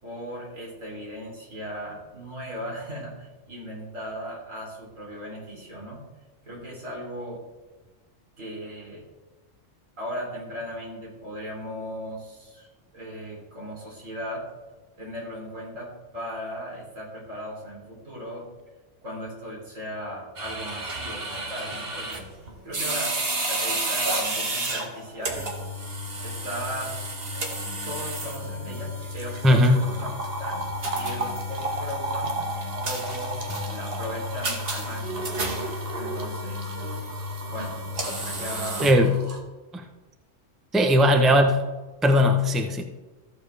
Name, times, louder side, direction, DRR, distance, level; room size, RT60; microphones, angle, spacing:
voice 1, 0.0-6.1 6.4-7.4 8.4-9.1 10.0-14.5 15.0-18.5 19.0-22.3 22.6-23.2 23.5-25.5 26.2-26.9 27.9-30.1 30.4-30.7 31.0-32.4 32.8-35.4 35.9-36.8 37.5-37.8 38.2-38.9 41.2-41.4, equal, 85° right, -4 dB, 3.9 m, -37 dB
sound 1, 20.4-39.4, right 1 dB, 50° right, 1.5 m, -31 dB
voice 2, 29.4-29.9 38.8-39.2 39.7-39.9 40.7-41.6 42.0-42.8, left 1 dB, ahead, 4 dB, 0.6 m, -19 dB
14.0 x 7.2 x 3.4 m, 1.2 s
omnidirectional pair, 1.3 m